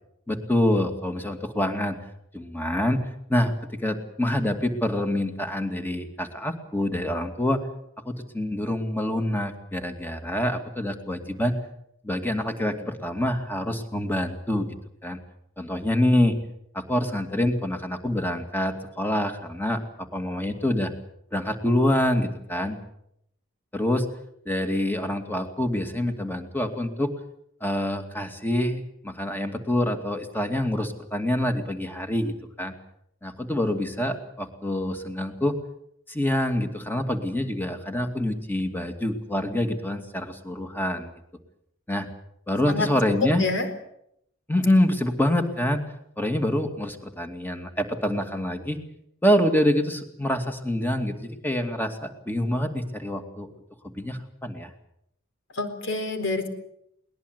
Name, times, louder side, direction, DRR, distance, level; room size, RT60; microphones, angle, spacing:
voice 1, 0.3-2.0 2.3-7.6 8.1-11.6 12.0-14.7 15.0-15.2 15.6-16.4 16.7-20.9 21.3-22.8 23.7-24.1 24.5-27.1 27.6-32.7 33.2-35.6 36.1-41.1 41.9-42.1 42.5-43.5 44.5-45.8 46.2-48.8 49.2-53.5 53.8-54.7, left 1 dB, 10° left, 6 dB, 2.4 m, -26 dB
voice 2, 42.7-43.7 55.5-56.5, left 3 dB, 65° left, 8 dB, 4.1 m, -27 dB
21.5 x 20.0 x 8.1 m, 0.74 s
head